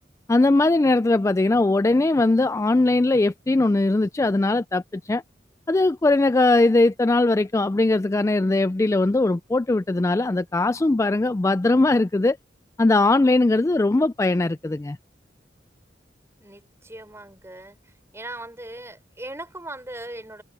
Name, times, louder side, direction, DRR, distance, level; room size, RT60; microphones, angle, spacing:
voice 1, 0.3-5.2 5.7-12.4 12.8-15.0, left 2 dB, 15° left, 0.3 m, -20 dB
voice 2, 16.4-17.8 18.1-20.4, right 1 dB, 15° right, 5.6 m, -39 dB
head